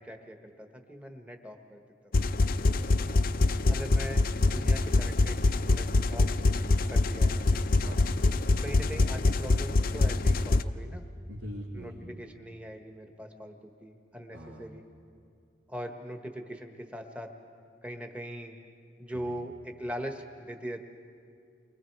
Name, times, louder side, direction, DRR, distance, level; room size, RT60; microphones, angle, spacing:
voice 1, 0.0-1.8 3.7-6.3 6.9-7.6 8.5-11.0 11.7-14.8 15.7-17.3 17.8-18.6 19.0-20.8, equal, 5° right, 4 dB, 1.2 m, -41 dB
sound 1, 2.1-10.6, left 2 dB, 45° left, 0.5 m, -25 dB
voice 2, 2.6-3.2 7.8-8.2 11.3-12.2 14.3-14.7 19.1-19.4, equal, 75° right, -3 dB, 2.3 m, -43 dB
29.5 x 24.0 x 4.7 m, 2.4 s
head